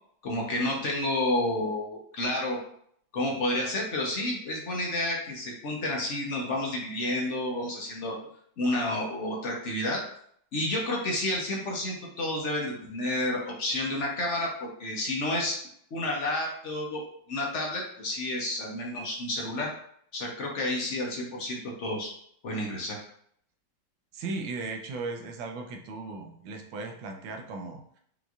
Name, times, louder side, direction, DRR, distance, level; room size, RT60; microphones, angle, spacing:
voice 1, 0.2-2.6 3.1-8.2 8.6-10.0 10.5-15.6 15.9-17.0 17.3-19.7 20.1-22.1 22.4-23.0, left 1 dB, 55° left, -1 dB, 0.8 m, -30 dB
voice 2, 24.1-27.8, right 3 dB, 85° right, 4 dB, 1.5 m, -37 dB
5.3 x 3.0 x 2.4 m, 0.65 s
omnidirectional pair, 2.2 m